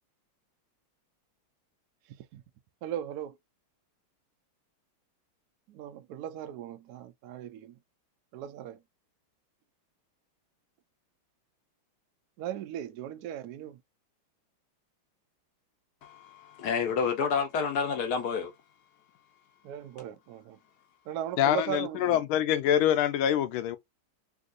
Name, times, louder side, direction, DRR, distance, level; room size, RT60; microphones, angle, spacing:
voice 1, 2.1-2.4 2.8-3.4 5.7-7.8 8.3-8.8 12.4-13.8 19.6-20.6 21.1-22.2, right 11 dB, 85° right, 0.8 m, -38 dB
voice 2, 16.0-18.5, left 6 dB, 70° left, 0.9 m, -29 dB
voice 3, 21.4-23.8, left 11 dB, 85° left, 1.4 m, -25 dB
3.5 x 2.6 x 2.4 m
omnidirectional pair, 2.2 m